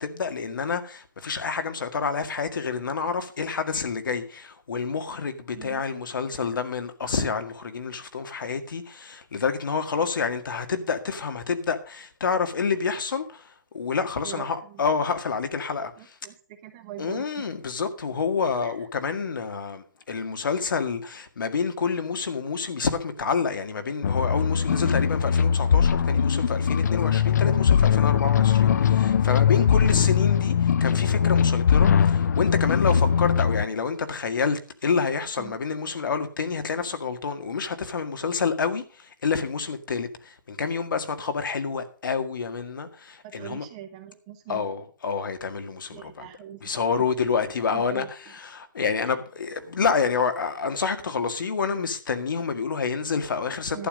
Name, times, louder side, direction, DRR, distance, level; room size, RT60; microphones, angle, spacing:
voice 1, 0.0-16.2 17.0-43.7 44.5-46.3 46.6-48.1 48.4-53.9, left 5 dB, 85° left, 1.9 m, -28 dB
voice 2, 14.2-14.8 16.0-16.4 16.6-17.3 18.6-18.7 24.7-25.1 29.8-30.0 35.4-35.5 43.2-44.7 45.9-46.6 47.7-48.1 49.0-49.2 53.7-53.9, right 12 dB, 20° right, 0.8 m, -41 dB
sound 1, 24.0-33.7, left 7 dB, 60° left, 0.5 m, -21 dB
11.5 x 9.2 x 5.2 m
hypercardioid pair, 175°, 11 cm